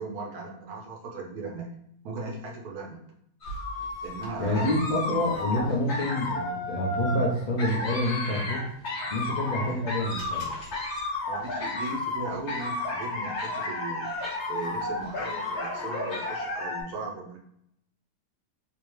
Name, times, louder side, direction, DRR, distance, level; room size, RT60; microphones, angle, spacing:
voice 1, 0.0-1.7 2.0-3.0 4.0-4.7 11.3-14.1 14.5-17.4, right 3 dB, 70° right, 0 dB, 1.1 m, -37 dB
sound 1, 3.4-16.8, left 2 dB, 50° left, 1.1 m, -32 dB
voice 2, 4.4-8.6 9.1-10.5, left 1 dB, 75° left, -1 dB, 0.4 m, -28 dB
3.5 x 2.9 x 3.0 m, 0.74 s
omnidirectional pair, 1.8 m